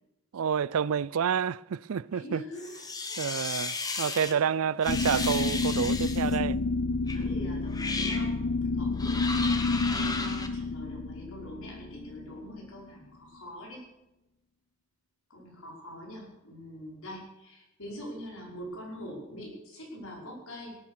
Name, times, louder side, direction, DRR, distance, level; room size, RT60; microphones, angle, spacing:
voice 1, 0.3-2.4 3.2-6.6, right 7 dB, 75° right, 0.4 m, -29 dB
voice 2, 2.1-2.8 3.1-3.2 4.1-4.7 7.1-8.4 8.8-13.8 15.3-20.8, equal, 80° left, 5.4 m, -44 dB
sound 1, 2.5-4.3 4.8-6.4 7.1-7.2 7.7-8.3 9.0-10.5, left 3 dB, 15° left, 1.1 m, -34 dB
sound 2, 4.9-12.8, left 3 dB, 55° left, 0.5 m, -30 dB
17.5 x 9.5 x 6.5 m
head